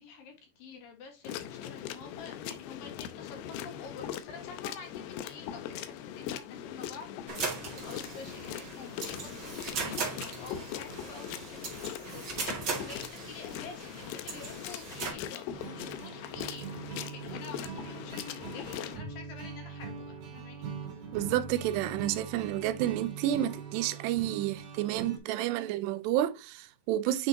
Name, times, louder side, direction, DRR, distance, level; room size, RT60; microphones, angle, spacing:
voice 1, 0.0-20.7, left 5 dB, 65° left, 3.2 m, -48 dB
sound 1, 1.2-19.0, left 10 dB, 85° left, 2.6 m, -41 dB
sound 2, 7.3-15.1, right 4 dB, 40° right, 2.3 m, -39 dB
sound 3, 15.5-25.2, right 5 dB, 55° right, 3.4 m, -42 dB
voice 2, 21.1-27.3, right 13 dB, 90° right, 2.8 m, -30 dB
9.1 x 5.2 x 2.8 m
omnidirectional pair, 4.7 m